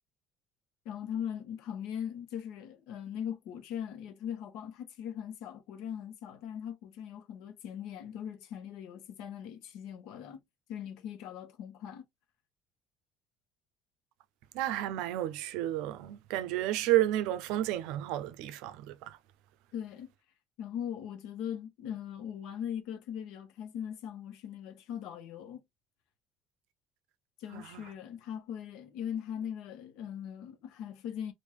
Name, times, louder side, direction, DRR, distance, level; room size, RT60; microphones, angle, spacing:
voice 1, 0.8-10.4 10.7-12.0 19.7-20.1 20.6-25.6 27.4-31.3, left 9 dB, 70° left, 1.0 m, -40 dB
voice 2, 14.5-19.2 27.5-27.8, right 14 dB, 90° right, 0.5 m, -31 dB
3.5 x 2.6 x 3.1 m
cardioid pair, 180°, 0 cm